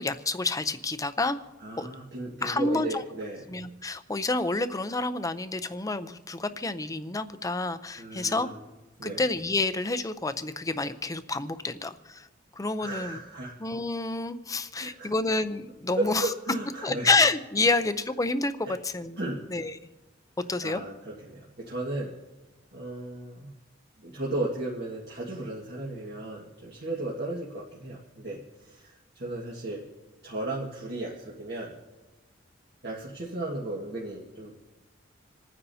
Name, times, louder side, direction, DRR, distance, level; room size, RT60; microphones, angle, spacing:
voice 1, 0.0-1.4 1.8-1.9 2.4-3.0 3.5-8.5 9.0-12.3 12.6-13.2 13.6-16.3 16.8-18.5 18.8-19.2 19.5-19.8 20.5-20.8, left 3 dB, 20° left, 11 dB, 0.6 m, -28 dB
voice 2, 1.6-3.4 8.0-8.6 9.0-9.2 12.8-13.5 14.8-15.1 15.9-17.1 18.6-18.7 19.2-19.4 20.6-22.1 22.7-23.5 24.0-29.8 30.2-31.7 32.8-34.6, right 2 dB, 55° right, -4 dB, 1.7 m, -35 dB
27.5 x 9.6 x 2.8 m, 1.1 s
head